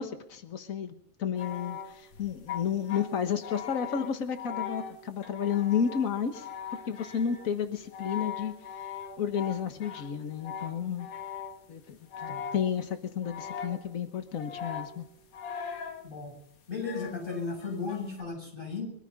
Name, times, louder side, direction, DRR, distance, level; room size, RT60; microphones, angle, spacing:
voice 1, 0.0-6.5 6.9-8.5 9.2-11.1 11.7-15.0, left 7 dB, 75° left, 8 dB, 0.7 m, -32 dB
sound 1, 1.4-11.7 12.1-12.9 13.2-14.0 14.4-16.1 16.8-18.2, left 7 dB, 90° left, 3.4 m, -41 dB
voice 2, 16.7-18.9, left 4 dB, 15° left, 1 dB, 7.1 m, -35 dB
23.5 x 14.0 x 4.1 m, 0.72 s
omnidirectional pair, 3.4 m